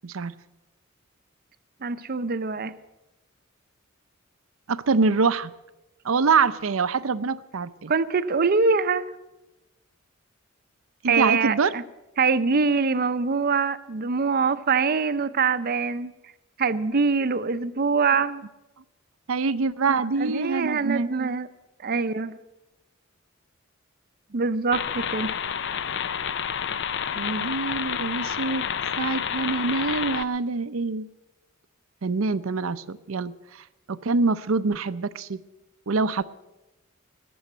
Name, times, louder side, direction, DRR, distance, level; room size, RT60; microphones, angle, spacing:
voice 1, 0.0-0.3 4.7-5.5 6.0-7.9 11.0-11.7 19.3-21.4 27.2-28.7 29.0-31.1 32.0-35.4 35.9-36.2, right 4 dB, 90° right, 13 dB, 0.6 m, -25 dB
voice 2, 1.8-2.7 7.9-9.0 11.1-11.8 12.2-16.1 16.6-18.4 19.9-21.5 21.8-22.4 24.3-25.3, right 4 dB, 50° right, 12 dB, 0.6 m, -24 dB
sound 1, 24.7-30.2, left 8 dB, 60° left, 0.6 m, -29 dB
20.0 x 7.1 x 7.8 m, 1.0 s
head